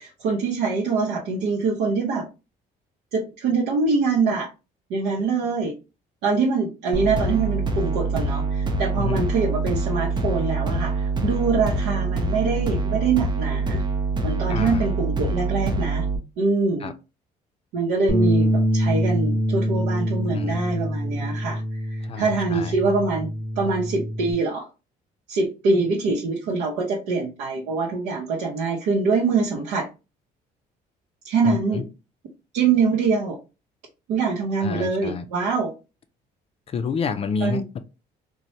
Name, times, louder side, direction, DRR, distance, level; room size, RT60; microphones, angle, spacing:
voice 1, 0.0-2.3 3.1-4.5 4.9-5.7 6.2-13.8 14.2-16.0 16.4-16.9 17.7-24.7 25.3-29.9 31.2-31.8 32.5-33.4 34.1-35.7 37.4-37.6, right 4 dB, 90° right, 0.7 m, -24 dB
sound 1, 6.9-16.2, right 3 dB, 25° right, 0.5 m, -25 dB
voice 2, 9.0-9.3 14.5-14.9 16.8-16.9 20.3-20.6 22.0-22.8 31.4-31.8 34.6-35.3 36.7-37.8, left 5 dB, 35° left, 0.3 m, -29 dB
Bass guitar, 18.1-24.3, equal, ahead, 1.0 m, -25 dB
3.0 x 2.1 x 2.7 m
cardioid pair, 110°, 17 cm